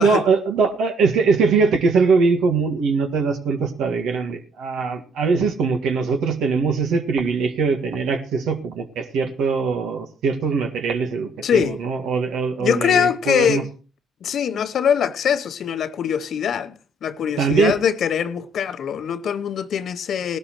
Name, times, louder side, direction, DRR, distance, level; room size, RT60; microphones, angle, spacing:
voice 1, 0.0-13.6 17.4-17.8, right 5 dB, 75° right, 1.8 m, -21 dB
voice 2, 11.4-11.8 12.6-13.7 14.2-16.7 17.0-20.4, left 8 dB, 65° left, 0.8 m, -22 dB
18.5 x 12.0 x 3.1 m
hypercardioid pair, 50°, 0 cm